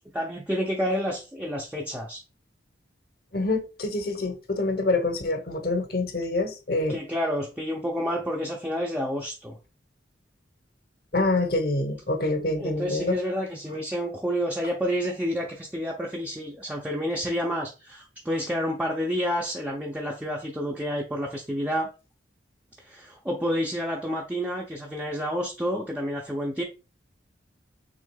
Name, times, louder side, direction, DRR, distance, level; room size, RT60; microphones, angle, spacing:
voice 1, 0.1-2.2 6.9-9.6 12.6-21.9 22.8-26.6, equal, 10° right, 0.5 m, -29 dB
voice 2, 3.3-7.0 11.1-13.2, left 2 dB, 55° left, 0.9 m, -26 dB
6.2 x 3.7 x 2.2 m
head